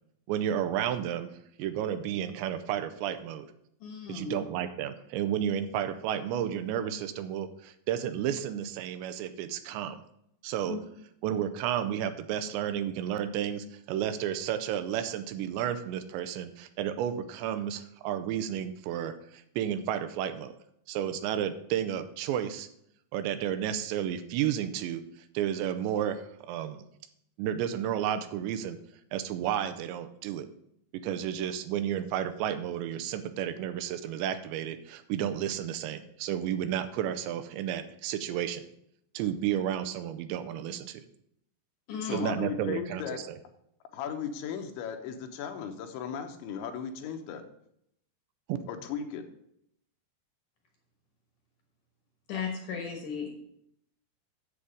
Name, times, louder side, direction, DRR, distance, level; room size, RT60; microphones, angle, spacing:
voice 1, 0.3-1.3 1.6-3.5 4.1-10.0 10.4-10.8 11.2-20.6 20.9-22.7 23.1-25.0 25.3-26.8 27.4-28.8 29.1-30.5 31.0-38.7 39.1-41.0 42.1-43.4 48.5-48.6, right 10 dB, 85° right, 10 dB, 2.8 m, -32 dB
voice 2, 3.8-4.3 10.7-10.8 41.9-42.2 52.3-53.4, left 6 dB, 65° left, 2 dB, 2.2 m, -35 dB
voice 3, 42.0-43.2 43.9-47.4 48.7-49.2, left 7 dB, 85° left, 6 dB, 3.3 m, -36 dB
8.3 x 7.9 x 5.0 m, 0.74 s
omnidirectional pair, 5.2 m